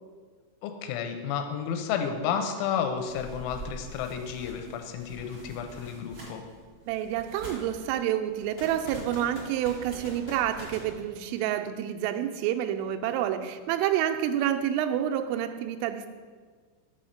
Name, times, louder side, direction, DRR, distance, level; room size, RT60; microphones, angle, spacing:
voice 1, 0.6-6.4, left 7 dB, 90° left, 5 dB, 3.1 m, -31 dB
sound 1, 3.0-11.0, right 2 dB, 75° right, 1.1 m, -46 dB
voice 2, 6.9-16.1, right 10 dB, 90° right, 7 dB, 3.1 m, -28 dB
sound 2, 8.6-11.8, left 1 dB, 65° left, 2.0 m, -45 dB
6.9 x 4.3 x 6.4 m, 1.5 s
omnidirectional pair, 5.5 m